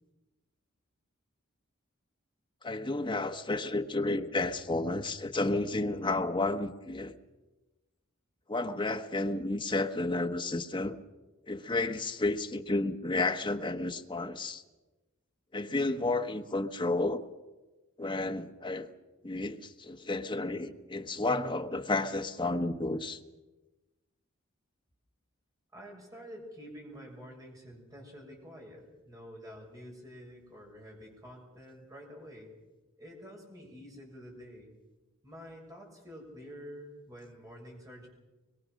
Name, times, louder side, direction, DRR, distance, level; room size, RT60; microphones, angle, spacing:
voice 1, 2.6-7.1 8.5-11.0 11.5-14.6 15.5-17.2 18.0-18.9 19.2-23.2, left 2 dB, 25° left, 1.1 m, -31 dB
voice 2, 25.7-32.5 33.0-34.7 35.2-38.1, equal, 15° right, 6.4 m, -48 dB
24.0 x 22.5 x 6.4 m
head